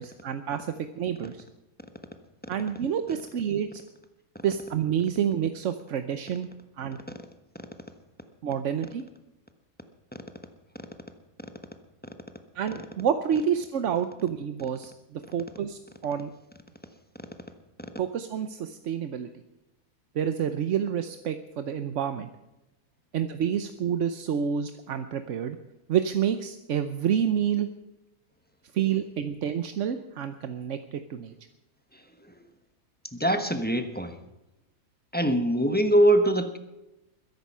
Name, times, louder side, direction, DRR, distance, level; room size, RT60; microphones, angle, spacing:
voice 1, 0.0-1.4 2.5-3.8 4.4-6.5 6.8-7.0 8.4-9.0 12.5-16.3 18.0-19.3 20.1-22.3 23.1-25.6 25.9-27.7 28.7-31.3, right 8 dB, 55° right, 9 dB, 1.0 m, -28 dB
voice 2, 33.1-34.1 35.1-36.6, right 1 dB, 5° left, 7 dB, 1.0 m, -22 dB
21.5 x 11.0 x 5.6 m, 0.98 s
omnidirectional pair, 1.7 m